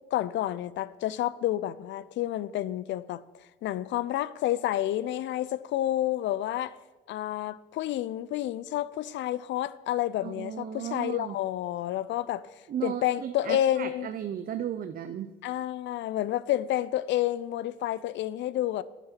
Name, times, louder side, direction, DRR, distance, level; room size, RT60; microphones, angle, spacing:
voice 1, 0.1-3.2 3.6-6.8 7.1-12.5 12.8-14.1 15.4-18.8, left 13 dB, 65° left, 0.5 m, -29 dB
voice 2, 10.2-11.4 12.7-15.3, right 9 dB, 45° right, 0.6 m, -35 dB
8.9 x 8.2 x 5.8 m
cardioid pair, 105°, 20 cm